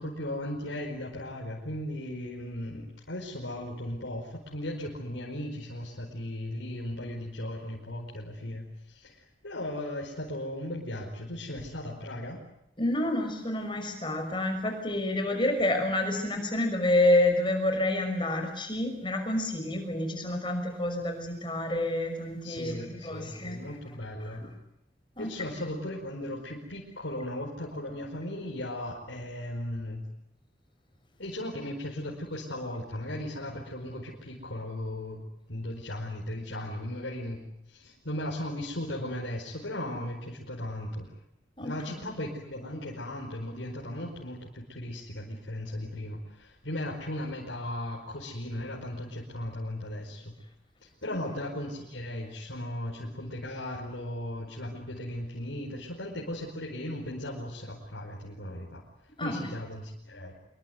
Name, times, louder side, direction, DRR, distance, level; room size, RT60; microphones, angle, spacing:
voice 1, 0.0-12.4 22.4-24.4 25.2-30.0 31.2-35.2 35.5-37.4 37.7-41.1 41.6-50.3 50.8-58.8 59.2-60.3, left 1 dB, 90° left, -2 dB, 4.9 m, -37 dB
voice 2, 12.8-23.6 24.2-24.4 25.2-25.3 41.6-41.7 42.0-42.1 59.2-59.5, left 1 dB, 25° left, 5 dB, 5.9 m, -28 dB
26.0 x 22.0 x 9.4 m, 0.82 s
head